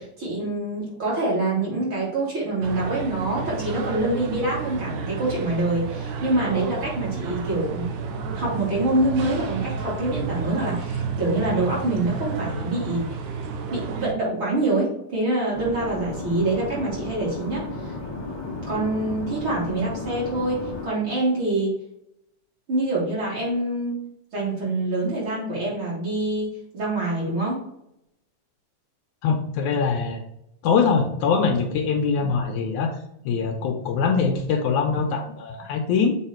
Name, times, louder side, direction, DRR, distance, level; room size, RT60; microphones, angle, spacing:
voice 1, 0.0-7.9 8.4-13.4 13.7-17.9 18.7-21.7 22.7-24.0 24.3-27.6 32.2-32.3, right 2 dB, 40° right, -6 dB, 3.3 m, -25 dB
sound 1, 2.6-14.1, right 4 dB, 75° right, 2.2 m, -31 dB
sound 2, 15.5-20.9, left 3 dB, 20° left, 0.7 m, -33 dB
voice 2, 29.2-30.2 30.6-32.9 33.3-36.2, left 5 dB, 75° left, 3 dB, 2.0 m, -23 dB
7.2 x 3.9 x 4.4 m, 0.78 s
omnidirectional pair, 3.7 m